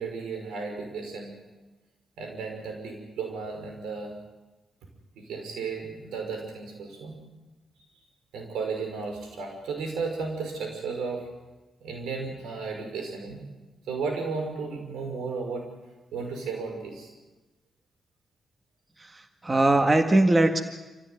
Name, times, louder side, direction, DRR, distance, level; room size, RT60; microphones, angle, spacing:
voice 1, 0.0-1.3 2.2-4.1 5.2-7.2 8.3-11.3 11.8-13.4 13.9-15.7 16.1-17.1, right 4 dB, 85° right, 3 dB, 5.7 m, -34 dB
voice 2, 19.0-20.6, right 2 dB, 30° right, 6 dB, 1.9 m, -21 dB
27.0 x 15.5 x 9.4 m, 1.2 s
supercardioid pair, 55°, 0 cm